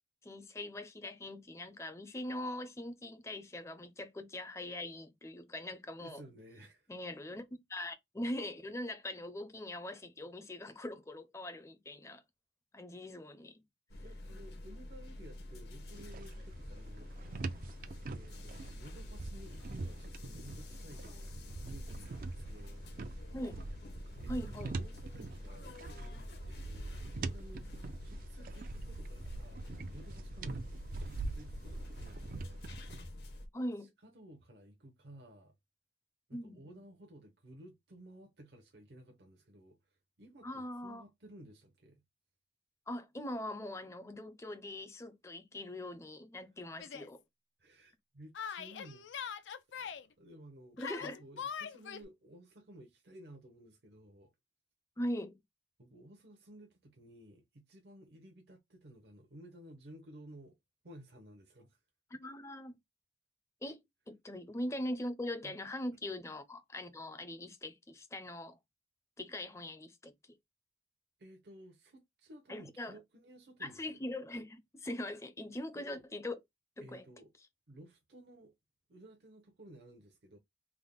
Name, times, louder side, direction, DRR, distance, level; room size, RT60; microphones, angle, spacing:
voice 1, 0.2-6.2 6.9-7.4 7.7-12.2 12.7-13.6 23.3-23.6 24.3-24.8 33.5-33.9 36.3-36.8 40.4-41.0 42.9-47.2 50.8-51.2 55.0-55.4 62.1-62.7 63.6-68.6 69.2-70.1 72.5-73.0 73.6-76.4 76.8-77.1, left 1 dB, 15° left, 0.5 m, -41 dB
voice 2, 6.0-6.9 7.3-7.4 14.0-17.1 18.0-21.0 21.6-23.3 24.2-25.7 26.4-27.7 28.0-32.8 33.8-35.5 36.3-42.0 46.4-46.5 47.6-49.5 49.7-54.3 55.8-60.6 60.8-61.8 65.4-65.6 71.2-74.0 75.7-76.0 76.8-77.3 77.7-78.5 78.9-80.4, right 1 dB, 65° right, 0.7 m, -55 dB
sound 1, 13.9-33.5, left 1 dB, 60° left, 0.8 m, -47 dB
sound 2, 15.9-33.0, right 3 dB, 50° right, 0.3 m, -44 dB
Yell, 46.8-47.1 48.4-50.1 50.8-52.0, left 7 dB, 85° left, 0.4 m, -42 dB
3.5 x 2.1 x 3.5 m
head